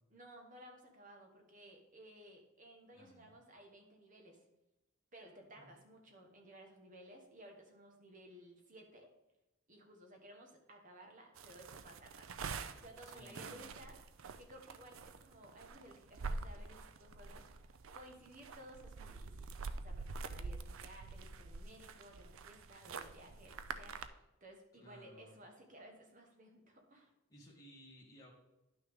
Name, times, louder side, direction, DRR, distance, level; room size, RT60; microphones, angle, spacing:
voice 1, 0.1-4.4 5.1-9.1 9.7-12.4 12.7-14.0 14.4-24.0 24.4-27.1, right 1 dB, 35° right, 2 dB, 1.4 m, -57 dB
voice 2, 2.9-3.4 5.5-5.8 13.0-13.8 24.8-25.4 27.3-28.3, equal, 15° left, -5 dB, 2.1 m, -59 dB
sound 1, 11.4-24.1, right 4 dB, 65° right, 0.5 m, -46 dB
10.5 x 6.0 x 3.7 m, 0.97 s
head